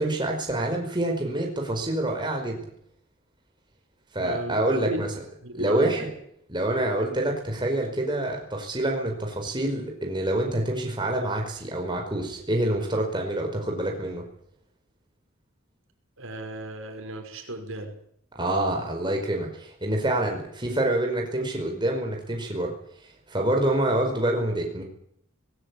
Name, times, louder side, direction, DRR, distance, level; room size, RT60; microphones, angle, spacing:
voice 1, 0.0-2.6 4.1-5.1 5.5-6.1 6.5-14.2 18.3-22.7 23.3-24.8, right 1 dB, 20° right, 1 dB, 5.0 m, -26 dB
voice 2, 4.2-4.6 4.8-5.0 5.4-6.1 16.2-17.9, right 1 dB, 75° right, 4 dB, 5.5 m, -35 dB
20.5 x 18.0 x 8.6 m, 0.68 s
head